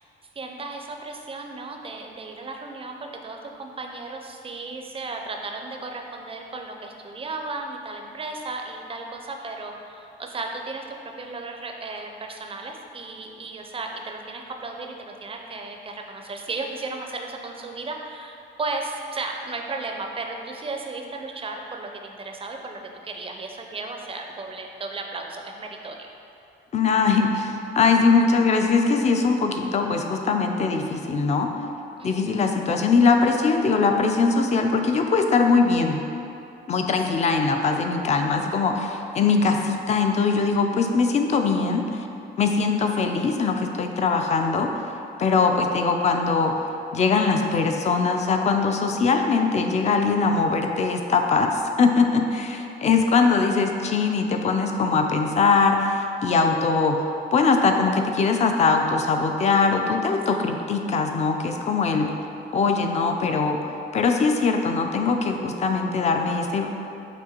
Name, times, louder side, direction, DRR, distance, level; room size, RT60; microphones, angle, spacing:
voice 1, 0.4-26.1 32.0-32.4 52.3-52.6 60.3-60.5 61.9-62.2, right 3 dB, 30° right, 3 dB, 0.4 m, -35 dB
voice 2, 26.7-31.5 32.0-36.0 36.7-42.0 42.4-44.9 45.2-46.6 46.9-57.0 57.3-62.1 62.5-63.6 63.9-66.7, left 4 dB, 35° left, 4 dB, 0.4 m, -21 dB
6.1 x 2.5 x 2.9 m, 2.7 s
cardioid pair, 90°, 20 cm